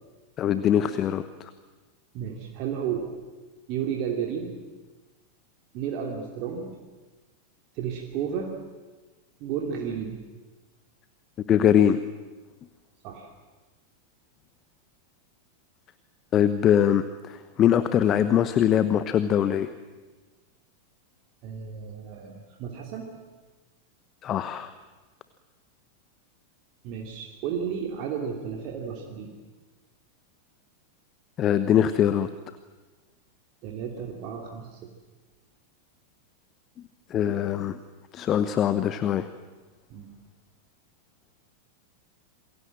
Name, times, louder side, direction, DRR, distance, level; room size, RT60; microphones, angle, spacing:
voice 1, 0.4-1.5 11.5-12.0 16.3-19.7 24.2-24.7 31.4-32.3 37.1-37.8 38.1-39.3, left 9 dB, 30° left, 13 dB, 1.0 m, -22 dB
voice 2, 2.1-3.1 3.7-4.6 5.7-6.8 7.7-8.6 9.4-10.2 13.0-13.3 21.4-23.1 26.8-29.3 33.6-34.9 39.9-40.1, right 7 dB, 40° right, 1 dB, 2.9 m, -32 dB
27.5 x 22.0 x 7.7 m, 1.3 s
figure-of-eight pair, 90°, 0 cm